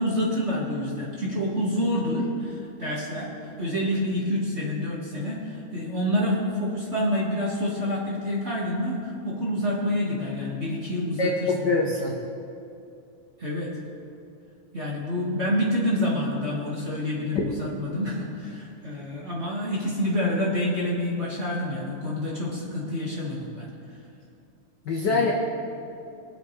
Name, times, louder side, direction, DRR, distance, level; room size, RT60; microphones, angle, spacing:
voice 1, 0.0-3.3 3.6-11.7 13.4-13.7 14.7-23.7 25.0-25.2, left 1 dB, 30° right, -6 dB, 1.6 m, -27 dB
voice 2, 11.2-12.1 24.9-25.3, left 3 dB, 80° left, -1 dB, 0.9 m, -24 dB
23.5 x 7.8 x 3.2 m, 2.6 s
omnidirectional pair, 3.4 m